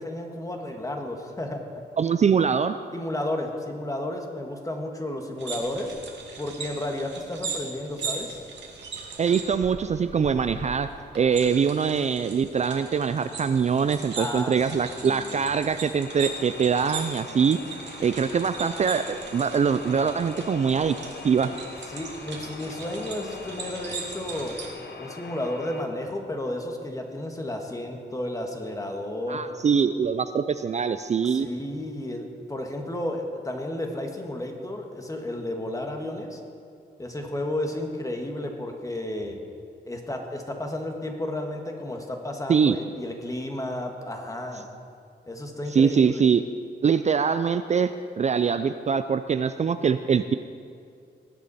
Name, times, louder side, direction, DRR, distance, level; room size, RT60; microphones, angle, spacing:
voice 1, 0.0-1.6 2.9-5.9 6.4-8.4 14.2-14.5 15.0-15.4 21.9-24.5 25.0-29.4 31.2-36.4 37.0-39.4 39.8-44.6 45.3-46.2, left 1 dB, 20° left, 3 dB, 1.5 m, -32 dB
voice 2, 2.0-2.8 9.2-10.9 11.2-17.6 18.0-21.0 21.2-21.5 29.3-31.5 42.5-42.8 45.7-46.4 46.8-50.3, right 6 dB, 40° right, 10 dB, 0.4 m, -23 dB
sound 1, 5.4-24.7, right 4 dB, 75° right, 2.0 m, -39 dB
sound 2, 15.9-25.8, left 4 dB, 65° left, 1.1 m, -42 dB
19.5 x 8.4 x 4.2 m, 2.3 s
cardioid pair, 95°, 18 cm